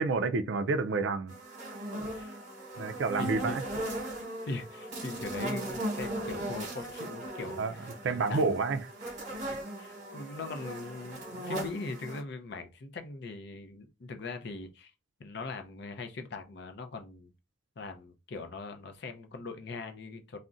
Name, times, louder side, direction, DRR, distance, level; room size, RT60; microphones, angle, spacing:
voice 1, 0.0-1.3 2.8-3.6 7.6-7.7 8.0-8.8, right 4 dB, 65° right, 0.4 m, -29 dB
sound 1, 1.3-12.2, right 1 dB, 35° right, 1.0 m, -38 dB
voice 2, 2.8-3.6 4.4-7.9 8.3-8.4 9.5-14.9 15.2-17.3 17.8-20.4, left 3 dB, 55° left, 0.5 m, -41 dB
2.4 x 2.1 x 3.8 m
head